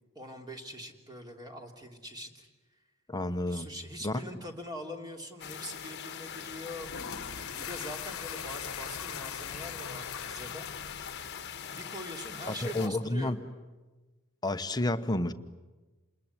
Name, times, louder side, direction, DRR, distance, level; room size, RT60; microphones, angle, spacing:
voice 1, 0.1-2.5 3.5-6.9 7.5-10.7 11.7-13.4, equal, 20° right, 2 dB, 3.1 m, -43 dB
voice 2, 3.1-3.7 4.0-4.2 12.5-13.4 14.4-15.3, left 1 dB, 20° left, 9 dB, 1.0 m, -30 dB
sound 1, 5.4-12.9, left 8 dB, 55° left, 1.3 m, -42 dB
sound 2, 6.8-11.8, left 7 dB, 80° left, 1.2 m, -42 dB
28.0 x 21.0 x 9.7 m, 1.2 s
head